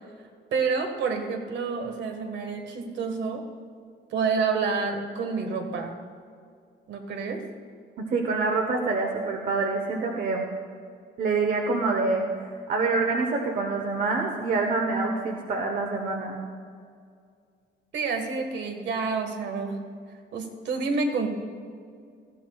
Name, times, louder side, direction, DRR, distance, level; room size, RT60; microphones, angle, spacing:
voice 1, 0.5-3.4 4.1-5.9 6.9-7.4 17.9-19.8 20.3-21.3, right 4 dB, 70° right, 4 dB, 1.6 m, -28 dB
voice 2, 8.0-10.5 11.2-12.2 12.7-16.4, right 3 dB, 45° right, 2 dB, 1.0 m, -26 dB
19.0 x 14.5 x 2.4 m, 2.2 s
cardioid pair, 175°, 19 cm